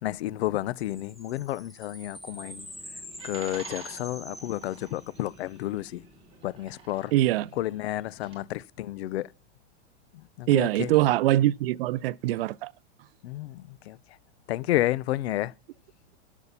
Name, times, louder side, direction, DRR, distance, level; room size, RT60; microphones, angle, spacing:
voice 1, 0.0-2.7 3.2-6.1 6.4-9.3 10.1-11.0 13.2-14.0 14.5-15.5, left 15 dB, 70° left, 0.6 m, -31 dB
sound 1, 0.8-5.4, equal, ahead, 0.5 m, -45 dB
sound 2, 2.0-8.4, right 4 dB, 15° right, 3.0 m, -50 dB
voice 2, 7.1-7.5 10.5-12.7, right 15 dB, 60° right, 0.4 m, -23 dB
12.5 x 7.2 x 5.7 m
supercardioid pair, 170°, 34 cm